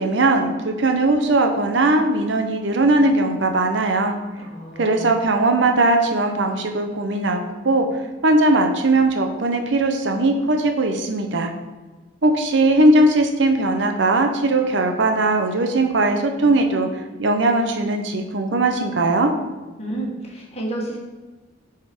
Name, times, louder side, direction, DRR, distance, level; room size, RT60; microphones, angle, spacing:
voice 1, 0.0-4.2 4.8-7.4 7.6-7.9 8.2-11.5 12.2-19.3, right 2 dB, 70° right, 4 dB, 0.7 m, -19 dB
voice 2, 4.3-5.2 19.8-21.0, right 1 dB, 35° left, -2 dB, 1.4 m, -30 dB
7.7 x 3.7 x 4.3 m, 1.2 s
head